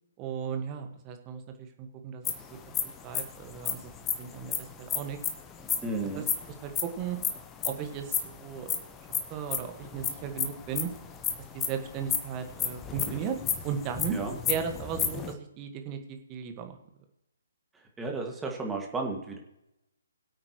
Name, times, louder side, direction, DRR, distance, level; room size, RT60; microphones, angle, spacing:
voice 1, 0.2-2.3 3.0-3.9 4.2-5.2 6.1-6.2 6.6-7.2 7.6-8.8 9.1-10.9 11.5-13.3 13.6-14.2 14.5-16.8, right 7 dB, 25° right, 6 dB, 1.6 m, -36 dB
sound 1, 2.2-5.8 6.1-7.8 8.1-15.3, left 8 dB, 15° left, 1.1 m, -31 dB
voice 2, 5.8-6.3 14.1-14.4 18.0-19.4, right 3 dB, 10° right, 1 dB, 2.0 m, -33 dB
22.0 x 8.6 x 3.1 m, 0.90 s
figure-of-eight pair, 135°, 0 cm